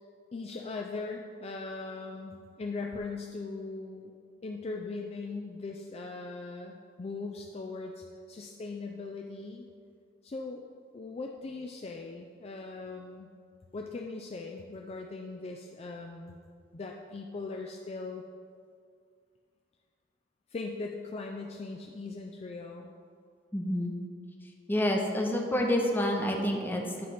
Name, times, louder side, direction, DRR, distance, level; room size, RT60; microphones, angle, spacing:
voice 1, 0.3-4.1 4.4-9.7 10.2-10.6 10.9-13.3 13.7-16.4 16.7-18.2 20.5-22.9, left 3 dB, 35° left, 1 dB, 0.4 m, -39 dB
voice 2, 23.5-23.9 24.7-27.1, left 1 dB, 10° left, 1 dB, 0.8 m, -28 dB
9.3 x 3.3 x 5.6 m, 2.2 s
head